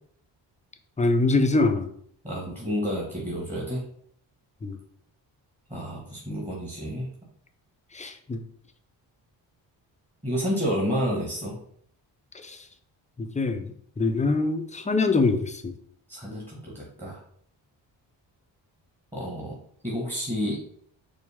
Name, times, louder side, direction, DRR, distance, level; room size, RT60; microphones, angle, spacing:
voice 1, 1.0-1.9 4.6-4.8 7.9-8.4 12.4-12.6 13.2-15.7, left 3 dB, 15° left, 6 dB, 0.5 m, -24 dB
voice 2, 2.2-3.8 5.7-7.1 10.2-11.5 16.1-17.2 19.1-19.6 19.8-20.6, equal, 15° right, -3 dB, 1.4 m, -30 dB
4.9 x 2.1 x 3.5 m, 0.64 s
supercardioid pair, 50°, 48 cm